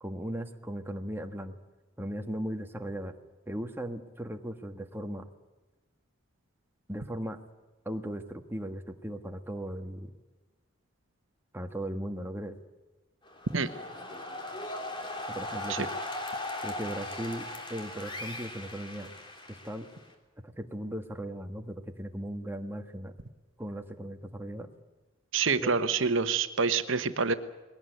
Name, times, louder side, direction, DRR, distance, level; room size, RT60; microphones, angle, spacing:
voice 1, 0.0-1.5 2.0-3.2 3.5-5.2 6.9-7.4 7.8-10.1 11.5-12.6 15.2-15.9 16.6-19.1 19.5-19.9 20.4-23.1 23.6-24.7 25.6-25.8, right 1 dB, 10° right, 5 dB, 1.5 m, -37 dB
sound 1, 13.2-20.1, left 1 dB, 25° left, 3.3 m, -39 dB
voice 2, 25.3-27.3, right 5 dB, 70° right, 11 dB, 1.2 m, -27 dB
21.5 x 18.0 x 9.3 m, 1.2 s
head